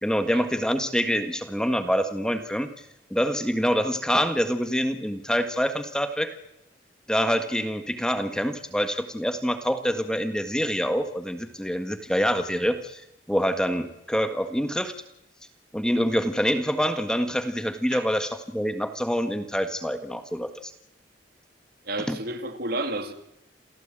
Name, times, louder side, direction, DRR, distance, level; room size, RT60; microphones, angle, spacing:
voice 1, 0.0-2.7 3.1-6.4 7.1-13.0 13.3-14.9 15.7-20.7 22.1-22.2, equal, 5° left, 8 dB, 1.7 m, -26 dB
voice 2, 21.9-23.1, right 2 dB, 55° right, 8 dB, 3.0 m, -31 dB
28.5 x 17.0 x 9.0 m, 0.86 s
head